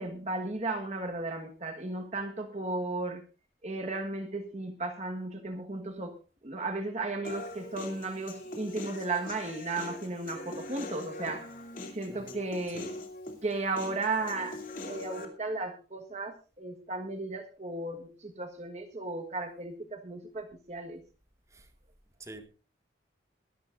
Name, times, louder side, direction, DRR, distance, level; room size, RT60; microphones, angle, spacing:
voice 1, 0.0-3.2 3.6-6.2 6.4-11.5 11.9-12.9 13.4-14.6 14.9-21.0, right 2 dB, 35° right, 4 dB, 1.4 m, -35 dB
Human voice, 7.2-15.3, left 2 dB, 45° left, 2.8 m, -42 dB
voice 2, 12.1-12.4 12.7-12.9 21.5-21.7 22.2-22.5, right 1 dB, 15° right, 6 dB, 1.9 m, -47 dB
22.5 x 12.0 x 2.5 m, 0.33 s
head